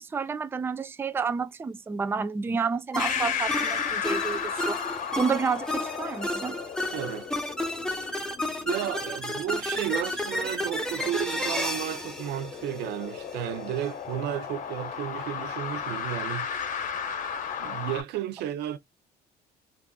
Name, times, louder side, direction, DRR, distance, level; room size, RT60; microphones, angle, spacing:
voice 1, 0.0-4.8 5.2-6.6, right 5 dB, 15° right, 0.3 m, -30 dB
sound 1, 2.9-13.3, left 1 dB, 5° left, 0.9 m, -32 dB
sound 2, 3.0-18.0, left 7 dB, 50° left, 0.8 m, -35 dB
voice 2, 6.9-7.3 8.7-16.5 17.6-18.8, right 12 dB, 80° right, 0.5 m, -33 dB
3.5 x 2.4 x 2.3 m
cardioid pair, 110°, 17 cm